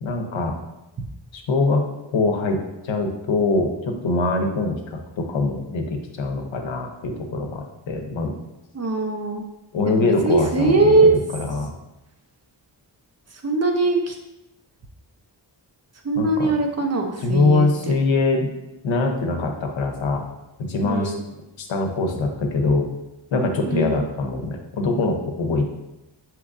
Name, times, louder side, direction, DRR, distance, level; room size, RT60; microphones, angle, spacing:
voice 1, 0.0-0.6 1.3-1.9 2.1-2.6 2.8-8.3 9.7-11.7 16.2-16.5 17.2-18.5 18.8-20.2 20.6-21.1 21.6-22.9 23.3-25.6, left 3 dB, 80° left, 3 dB, 0.7 m, -23 dB
voice 2, 8.7-9.4 9.9-11.1 13.4-14.1 16.0-17.7 20.8-21.2 23.6-24.0, right 3 dB, 35° right, 2 dB, 0.5 m, -20 dB
5.9 x 3.0 x 2.5 m, 0.93 s
wide cardioid pair, 165°, 45 cm